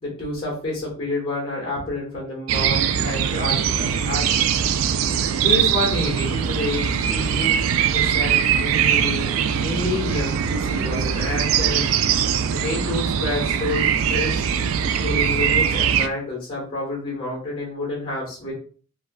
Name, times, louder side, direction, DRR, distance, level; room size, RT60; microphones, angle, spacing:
voice 1, 0.0-4.2 4.7-4.8 5.4-7.5 7.8-11.8 12.5-14.3 14.8-18.5, left 2 dB, 25° left, -3 dB, 1.5 m, -29 dB
sound 1, 2.5-16.1, right 8 dB, 80° right, 0.3 m, -21 dB
4.6 x 2.3 x 2.3 m, 0.41 s
head